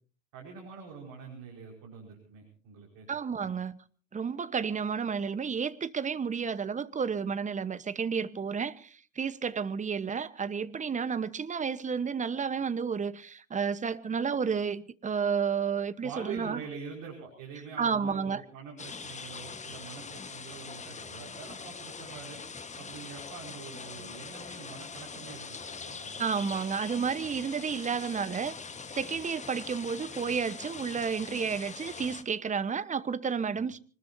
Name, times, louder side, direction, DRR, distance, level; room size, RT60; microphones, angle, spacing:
voice 1, 0.3-3.1 3.4-3.5 16.0-22.4 22.8-26.2 26.5-26.6 33.5-33.6, right 6 dB, 55° right, 5.3 m, -45 dB
voice 2, 3.1-3.8 4.1-16.6 17.8-18.4 26.2-28.5 28.9-33.8, right 6 dB, 20° right, 1.1 m, -31 dB
sound 1, 18.8-32.2, left 5 dB, 20° left, 1.5 m, -43 dB
25.0 x 20.0 x 2.8 m
hypercardioid pair, 75°, 38 cm